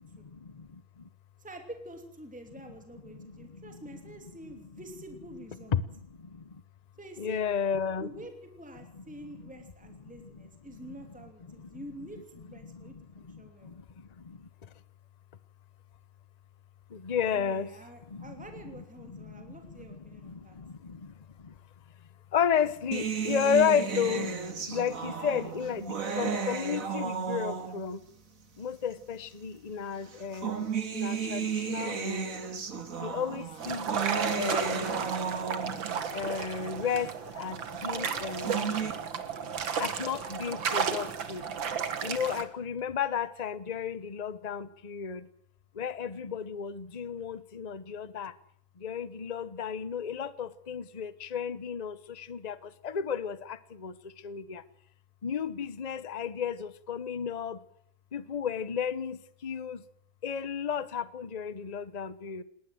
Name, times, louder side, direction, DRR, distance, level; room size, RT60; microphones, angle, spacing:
voice 1, 0.3-1.1 3.1-3.8 5.7-6.6 7.2-8.1 10.2-10.4 10.9-11.0 11.5-11.8 12.6-14.5 16.9-17.7 18.1-18.4 19.1-21.1 21.4-21.5 22.3-28.0 28.6-32.3 33.0-33.9 34.3-35.5 36.1-39.0 39.8-41.5 42.0-45.3 45.7-48.3 48.8-54.6 55.2-57.6 58.1-59.8 60.2-62.4, left 7 dB, 70° left, 16 dB, 0.3 m, -33 dB
voice 2, 1.4-5.8 7.0-7.4 8.0-13.7 17.3-20.6, right 1 dB, 5° right, 5 dB, 2.8 m, -47 dB
sound 1, 22.9-28.0 28.9-29.0 30.1-36.0 38.1-38.9, right 6 dB, 40° right, 2.1 m, -33 dB
sound 2, 33.6-42.4, right 6 dB, 65° right, 2.4 m, -33 dB
20.0 x 19.0 x 7.8 m, 0.68 s
omnidirectional pair, 2.3 m